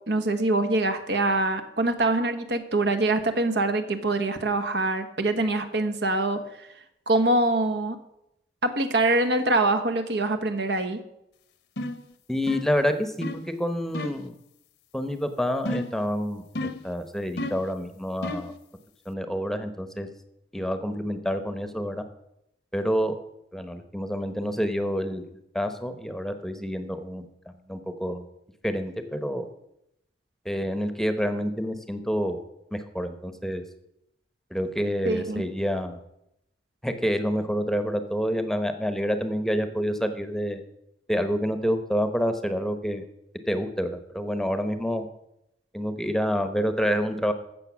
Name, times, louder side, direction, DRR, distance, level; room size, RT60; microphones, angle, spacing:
voice 1, 0.1-6.7 7.1-8.0 8.6-11.0 35.0-35.4, right 2 dB, 75° right, 7 dB, 1.3 m, -24 dB
sound 1, 11.8-12.1 12.5-12.8 13.2-13.5 13.9-14.3 15.7-16.0 16.6-16.9 17.4-17.7 18.2-18.6, left 1 dB, 70° left, 1.0 m, -32 dB
voice 2, 12.3-14.4 14.9-18.5 19.1-20.1 20.5-22.0 22.7-23.2 23.5-25.2 25.5-28.2 28.6-29.5 30.4-32.4 32.7-33.6 34.5-36.0 36.8-40.6 41.1-43.0 43.5-45.1 45.7-47.3, equal, ahead, 9 dB, 0.9 m, -28 dB
15.5 x 6.6 x 6.2 m, 0.82 s
head